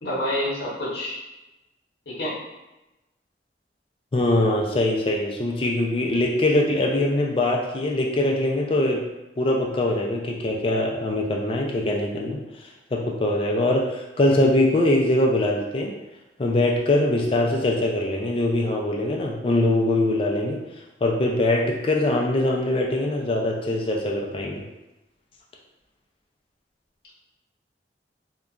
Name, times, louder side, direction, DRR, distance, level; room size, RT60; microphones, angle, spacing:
voice 1, 0.0-1.2 2.1-2.4, left 1 dB, 65° left, -6 dB, 0.8 m, -27 dB
voice 2, 4.1-9.0 9.4-12.4 12.9-15.9 16.4-20.6 21.0-24.6, left 1 dB, 30° left, 0 dB, 0.3 m, -22 dB
2.8 x 2.2 x 2.4 m, 0.98 s
head